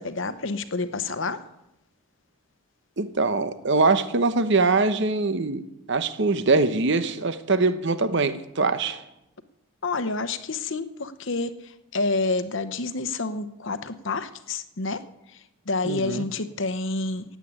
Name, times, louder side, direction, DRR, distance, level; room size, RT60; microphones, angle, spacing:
voice 1, 0.0-1.4 9.8-15.0 15.7-17.2, left 3 dB, 60° left, 12 dB, 0.9 m, -28 dB
voice 2, 3.0-5.6 5.9-9.0 15.8-16.3, right 3 dB, 55° right, 11 dB, 0.9 m, -23 dB
16.5 x 8.4 x 8.7 m, 0.91 s
head